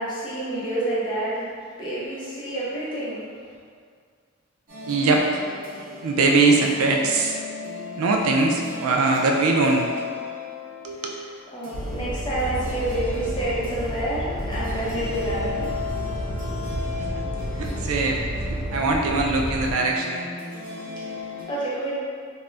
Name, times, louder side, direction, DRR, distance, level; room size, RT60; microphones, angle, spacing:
voice 1, 0.0-1.5 1.8-3.3 11.5-15.7 21.0-22.0, right 1 dB, 20° left, -9 dB, 0.6 m, -28 dB
sound 1, 4.7-21.4, left 4 dB, 40° right, 0.9 m, -36 dB
voice 2, 4.9-5.3 6.0-7.4 7.9-9.9 10.8-11.2 17.0-17.3 17.6-20.3, right 3 dB, 80° right, 1 dB, 0.3 m, -22 dB
sound 2, 11.7-19.7, equal, 70° left, 0.4 m, -31 dB
2.5 x 2.0 x 3.2 m, 2.1 s
head